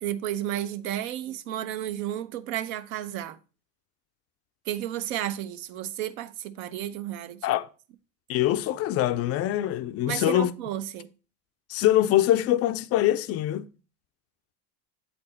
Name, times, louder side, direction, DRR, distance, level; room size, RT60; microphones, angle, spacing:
voice 1, 0.0-3.4 4.7-7.6 10.1-11.1, right 12 dB, 60° right, 0.7 m, -32 dB
voice 2, 8.3-10.5 11.7-13.7, left 13 dB, 30° left, 0.4 m, -24 dB
7.9 x 4.2 x 4.2 m
hypercardioid pair, 90°, 49 cm